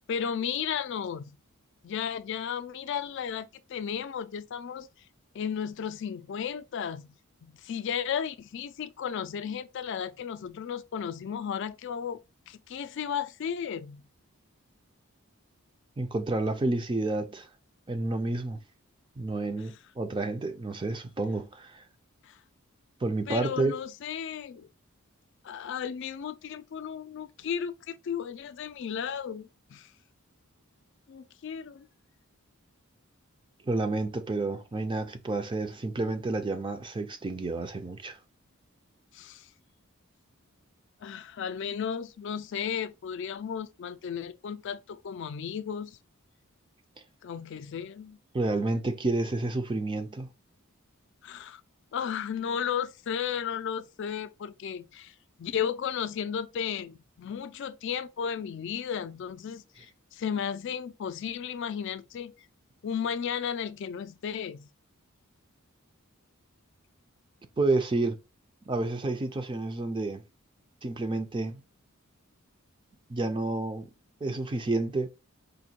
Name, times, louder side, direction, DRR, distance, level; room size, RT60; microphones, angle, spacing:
voice 1, 0.1-1.2 1.8-4.9 5.3-7.1 7.4-12.2 12.5-14.0 22.2-22.4 23.3-24.7 25.4-29.9 31.1-31.9 39.1-39.5 41.0-46.0 47.2-48.2 51.2-51.6 51.9-62.3 62.8-64.7, left 8 dB, 55° left, 0.3 m, -34 dB
voice 2, 16.0-17.5 17.9-18.6 19.2-21.8 23.0-23.7 33.7-38.2 48.3-50.3 67.6-68.2 68.7-70.2 70.8-71.6 73.1-73.9 74.2-75.1, right 2 dB, 20° right, 0.4 m, -30 dB
5.0 x 2.2 x 2.8 m
head